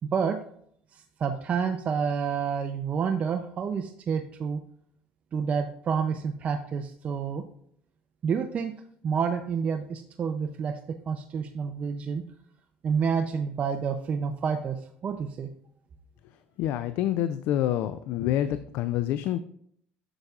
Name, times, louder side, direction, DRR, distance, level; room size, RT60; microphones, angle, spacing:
voice 1, 0.0-0.4 0.9-4.6 5.3-7.4 8.2-8.7 9.0-12.2 12.8-15.5, right 6 dB, 40° right, 5 dB, 0.5 m, -29 dB
voice 2, 16.6-19.4, left 12 dB, 70° left, 12 dB, 0.4 m, -27 dB
8.7 x 6.6 x 2.4 m, 0.66 s
cardioid pair, 115°, 4 cm